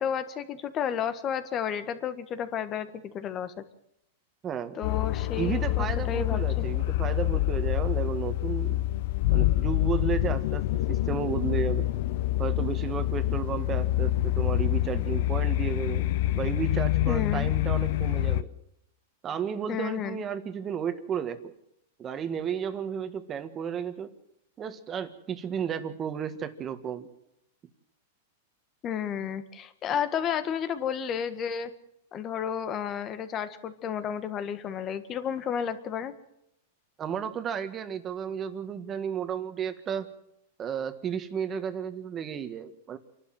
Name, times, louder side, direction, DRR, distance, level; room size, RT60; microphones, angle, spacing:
voice 1, 0.0-2.9 3.1-3.5 4.7-6.7 17.1-17.5 19.7-20.2 28.8-31.7 32.1-36.1, left 8 dB, 30° left, 11 dB, 1.7 m, -32 dB
voice 2, 4.4-4.8 5.4-8.8 9.3-11.9 12.4-16.0 16.3-18.5 19.2-21.5 22.0-24.1 24.6-27.1 37.0-40.1 40.6-43.0, right 8 dB, 25° right, 10 dB, 1.8 m, -33 dB
sound 1, 4.8-18.4, left 15 dB, 60° left, 0.8 m, -26 dB
28.0 x 12.0 x 7.8 m, 0.80 s
supercardioid pair, 140°, 0 cm